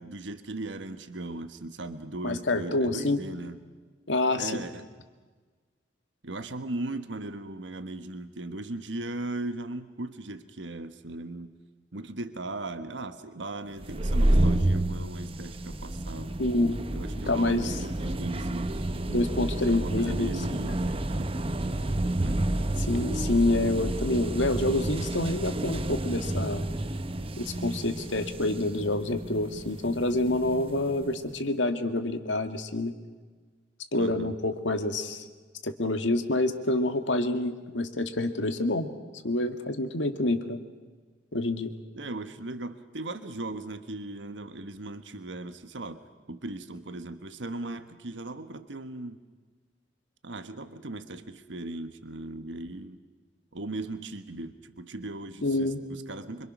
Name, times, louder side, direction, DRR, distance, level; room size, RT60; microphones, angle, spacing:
voice 1, 0.0-3.6 4.4-4.9 6.2-11.5 11.9-16.4 16.9-18.8 19.7-21.3 22.2-22.4 33.9-34.3 41.9-49.2 50.2-53.0 53.5-56.5, right 2 dB, 80° right, 10 dB, 1.3 m, -38 dB
voice 2, 2.2-3.2 4.1-4.6 16.4-16.8 17.3-17.7 19.1-20.3 20.6-20.7 22.9-26.6 27.4-32.9 33.9-35.2 35.6-38.9 39.2-40.6 41.3-41.7 55.4-55.8, left 2 dB, 85° left, 7 dB, 1.9 m, -27 dB
sound 1, 13.8-31.2, right 1 dB, 30° right, 0.9 m, -30 dB
26.0 x 25.0 x 6.2 m, 1.4 s
head